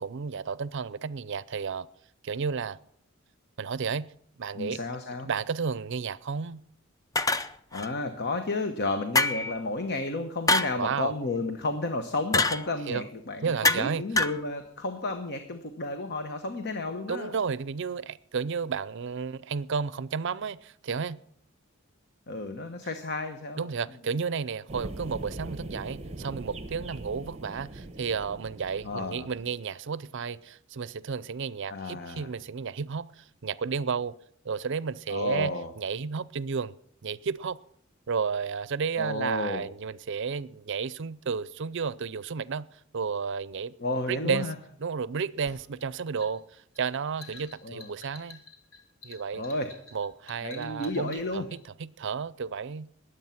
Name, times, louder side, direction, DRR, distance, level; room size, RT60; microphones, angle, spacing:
voice 1, 0.0-1.9 2.2-2.8 3.6-4.1 4.4-4.8 5.2-6.6 10.8-11.1 12.9-13.0 13.4-14.0 17.1-21.2 23.6-34.2 34.4-36.8 37.0-37.6 38.1-42.7 42.9-43.7 44.1-44.5 44.8-48.4 49.0-49.4 49.9-52.9, right 5 dB, 60° right, 0.5 m, -32 dB
voice 2, 4.5-5.3 7.7-17.4 22.3-23.7 28.8-29.3 31.7-32.3 35.1-35.7 39.0-39.7 43.8-44.5 47.6-47.9 49.3-49.7 50.4-51.5, left 2 dB, 55° left, 1.1 m, -32 dB
sound 1, 7.2-7.9 9.2-9.6 10.5-10.8 12.3-12.7 13.6-13.9 14.2-14.4, left 2 dB, 15° left, 0.6 m, -25 dB
sound 2, 24.7-29.6, right 2 dB, 30° right, 1.1 m, -41 dB
sound 3, 45.5-51.6, left 3 dB, 70° left, 2.2 m, -50 dB
20.5 x 8.1 x 5.8 m
head